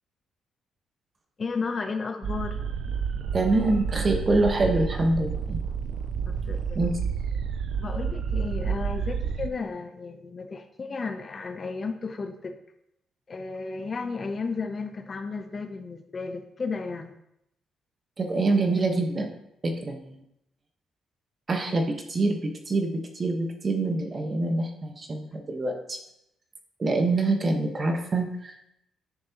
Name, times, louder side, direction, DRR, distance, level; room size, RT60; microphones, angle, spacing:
voice 1, 1.4-2.6 6.3-6.8 7.8-12.5 13.3-17.1, left 4 dB, 40° left, 6 dB, 0.8 m, -33 dB
sound 1, 2.2-9.5, right 6 dB, 65° right, 0.5 m, -30 dB
voice 2, 3.3-5.6 6.7-7.0 18.2-19.3 19.6-20.2 21.5-26.0 26.8-28.7, right 2 dB, 35° right, 4 dB, 1.3 m, -25 dB
9.6 x 6.6 x 3.0 m, 0.79 s
cardioid pair, 90°, 0 cm